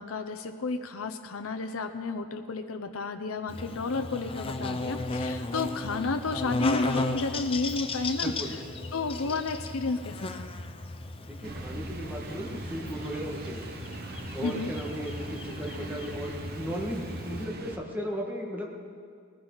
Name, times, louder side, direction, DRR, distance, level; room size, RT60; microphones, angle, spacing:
voice 1, 0.0-8.6 8.9-10.5 14.4-14.7, left 3 dB, 75° left, 6 dB, 0.7 m, -32 dB
Buzz, 3.5-17.5, left 2 dB, 25° left, 0.7 m, -35 dB
voice 2, 8.2-8.6 11.2-13.7 14.3-18.7, equal, 10° right, -1 dB, 1.8 m, -36 dB
sound 1, 11.4-17.8, right 2 dB, 45° right, 1.1 m, -41 dB
20.5 x 14.0 x 4.0 m, 2.2 s
head